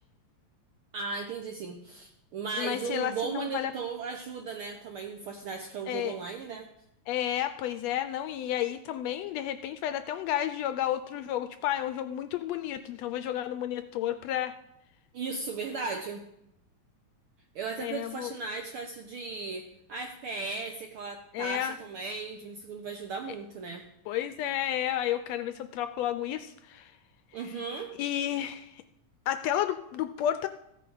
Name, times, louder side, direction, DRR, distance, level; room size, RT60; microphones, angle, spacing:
voice 1, 0.9-6.7 15.1-16.2 17.5-23.8 27.3-28.0, right 4 dB, 75° right, 4 dB, 1.2 m, -36 dB
voice 2, 2.6-3.7 5.9-6.2 7.1-14.6 17.8-18.3 21.3-21.8 24.1-26.9 27.4-27.5 28.0-28.8 29.3-30.5, left 11 dB, 80° left, 10 dB, 1.6 m, -31 dB
14.5 x 9.1 x 3.9 m, 0.80 s
omnidirectional pair, 3.3 m